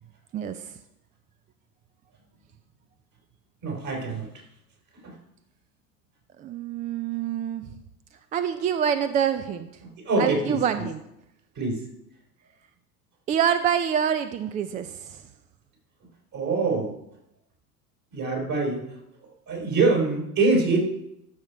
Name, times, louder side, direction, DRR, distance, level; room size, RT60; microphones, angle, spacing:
voice 1, 0.3-0.7 6.4-7.6 8.3-9.7 10.2-11.0 13.3-15.2, right 8 dB, 20° right, 11 dB, 0.3 m, -26 dB
voice 2, 3.6-4.3 5.0-5.2 9.8-10.9 11.6-11.8 16.3-17.0 18.1-18.9 19.5-20.8, right 3 dB, 45° right, 1 dB, 4.0 m, -24 dB
13.0 x 6.0 x 4.6 m, 0.82 s
hypercardioid pair, 80°, 47 cm